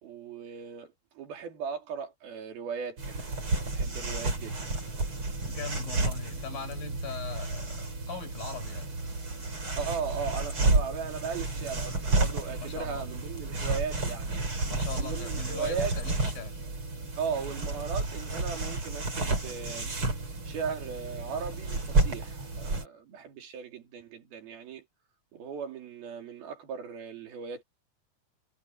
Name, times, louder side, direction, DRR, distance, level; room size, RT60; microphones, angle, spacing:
voice 1, 0.0-3.3 3.6-4.8 9.8-14.4 15.0-16.0 17.2-19.9 20.4-24.8 25.3-27.6, right 6 dB, 85° right, 4.9 m, -37 dB
sound 1, 3.0-22.8, right 2 dB, 35° right, 6.4 m, -31 dB
voice 2, 5.5-8.9 12.6-13.1 14.7-16.6, left 5 dB, 70° left, 7.0 m, -40 dB
omnidirectional pair, 4.2 m